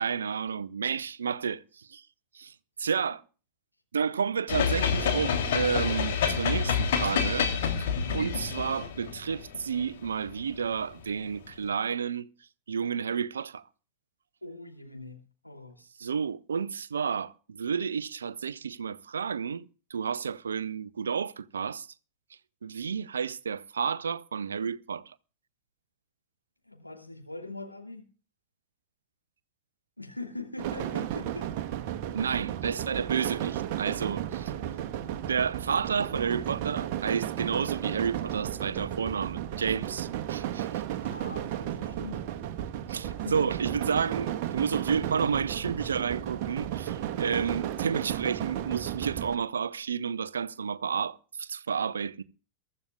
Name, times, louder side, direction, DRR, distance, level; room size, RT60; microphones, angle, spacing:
voice 1, 0.0-2.0 2.3-3.2 3.9-7.9 8.1-12.3 12.7-13.6 16.0-21.9 22.6-25.1 32.1-34.6 35.3-40.8 42.9-52.2, right 6 dB, 70° right, 0.7 m, -31 dB
sound 1, 4.5-10.8, left 6 dB, 55° left, 3.2 m, -28 dB
voice 2, 7.9-8.3 14.4-15.9 26.7-28.1 30.0-31.5 41.0-42.3 43.0-43.4, left 2 dB, 90° left, 3.0 m, -42 dB
sound 2, 30.6-49.4, right 11 dB, 45° right, 1.3 m, -34 dB
23.0 x 14.0 x 2.4 m
figure-of-eight pair, 90°, 0 cm